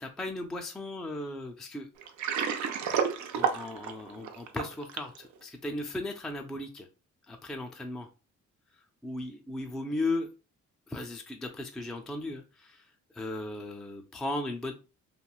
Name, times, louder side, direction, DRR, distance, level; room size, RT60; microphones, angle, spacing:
voice 1, 0.0-1.9 3.3-6.9 7.3-8.1 9.0-10.3 10.9-14.7, left 2 dB, ahead, 4 dB, 0.3 m, -36 dB
Water, 2.0-5.2, right 7 dB, 70° right, 0.5 m, -30 dB
3.0 x 2.6 x 2.3 m, 0.31 s
cardioid pair, 90°, 30 cm